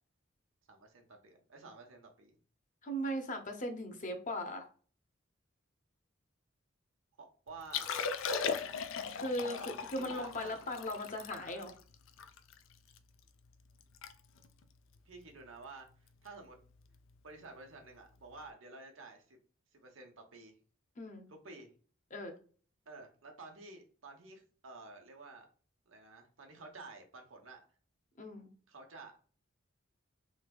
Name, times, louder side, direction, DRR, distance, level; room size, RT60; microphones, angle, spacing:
voice 1, 0.7-2.3 7.2-8.0 9.5-10.7 11.4-11.6 15.0-16.6 17.2-19.4 19.7-20.6 21.3-21.7 22.9-25.5 25.9-27.6 28.7-29.1, right 3 dB, 80° right, 3 dB, 0.9 m, -52 dB
voice 2, 2.8-4.7 9.1-11.7 21.0-21.3 22.1-22.3 28.2-28.5, equal, 40° left, 5 dB, 0.7 m, -38 dB
Liquid, 7.6-13.0 13.4-13.5 13.8-14.1 14.4-14.6 15.2-15.5 16.9-17.0, left 6 dB, 75° left, 0.4 m, -38 dB
3.3 x 3.1 x 2.2 m, 0.40 s
head